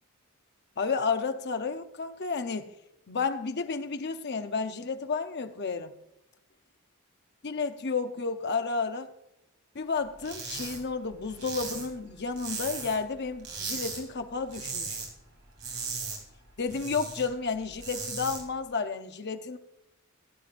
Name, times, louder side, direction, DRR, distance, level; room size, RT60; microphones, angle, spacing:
voice 1, 0.8-2.7 3.1-5.9 7.4-9.1 9.7-15.0 16.6-19.6, left 4 dB, 50° left, 7 dB, 0.8 m, -31 dB
sound 1, 10.2-10.8 11.1-13.1 13.4-14.0 14.3-15.1 15.4-17.2 17.6-18.4, right 4 dB, 55° right, 3.4 m, -37 dB
17.5 x 9.0 x 2.6 m, 0.86 s
head